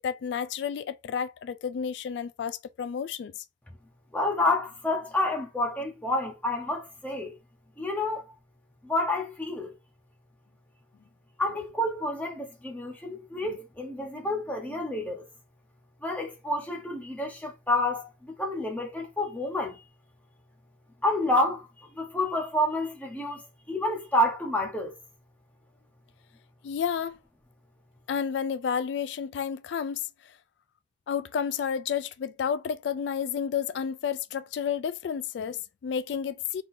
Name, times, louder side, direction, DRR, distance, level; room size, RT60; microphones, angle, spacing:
voice 1, 0.0-3.3 26.6-27.2 28.1-30.1 31.1-36.6, left 7 dB, 80° left, 0.3 m, -31 dB
voice 2, 4.1-7.4 7.8-8.3 8.8-9.7 11.4-15.3 16.0-19.8 21.0-21.7 22.0-23.4 23.7-24.9, left 1 dB, 10° left, 1.1 m, -29 dB
4.0 x 3.8 x 2.6 m
head